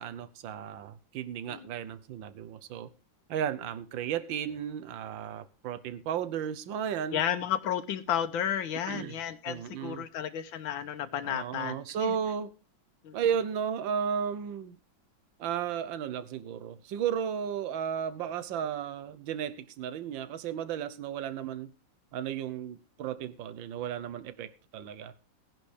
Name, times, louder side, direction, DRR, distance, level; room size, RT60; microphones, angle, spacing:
voice 1, 0.0-2.9 3.3-7.2 8.9-9.1 9.5-10.0 11.2-12.5 13.1-14.8 15.4-21.7 22.1-25.1, right 8 dB, 80° right, 1.6 m, -34 dB
voice 2, 7.1-12.2 13.0-13.2, left 9 dB, 85° left, 1.6 m, -32 dB
18.5 x 10.5 x 3.3 m
omnidirectional pair, 2.1 m